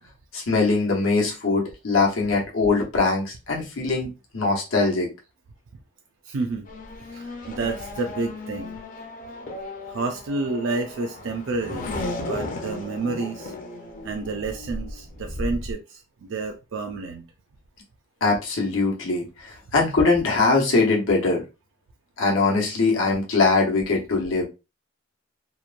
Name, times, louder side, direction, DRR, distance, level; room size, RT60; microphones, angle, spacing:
voice 1, 0.3-5.1 18.2-21.4 22.2-24.5, left 3 dB, 90° left, 0.9 m, -22 dB
voice 2, 6.3-6.7 7.1-8.8 9.9-11.9 12.3-13.5 14.0-17.2, right 3 dB, 70° right, 0.4 m, -30 dB
Race car auto racing / Accelerating revving vroom, 6.7-15.7, left 2 dB, 40° left, 0.5 m, -35 dB
2.9 x 2.1 x 2.4 m
head